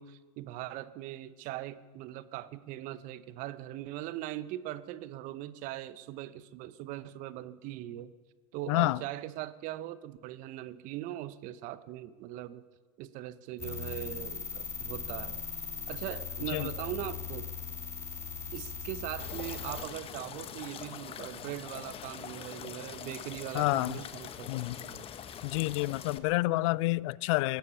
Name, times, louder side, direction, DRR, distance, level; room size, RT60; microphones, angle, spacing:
voice 1, 0.0-8.1 8.5-12.6 13.0-15.4 15.9-17.5 18.5-24.5 24.8-25.0, right 14 dB, 45° right, 15 dB, 0.8 m, -40 dB
voice 2, 8.7-9.0 16.5-16.7 23.5-24.0 24.5-24.8 25.4-27.6, left 20 dB, 60° left, 23 dB, 0.4 m, -28 dB
sound 1, 13.6-19.8, left 6 dB, 15° left, 3.0 m, -39 dB
sound 2, 19.2-26.2, left 9 dB, 30° left, 1.1 m, -43 dB
16.5 x 12.5 x 7.0 m, 1.3 s
hypercardioid pair, 100°, 18 cm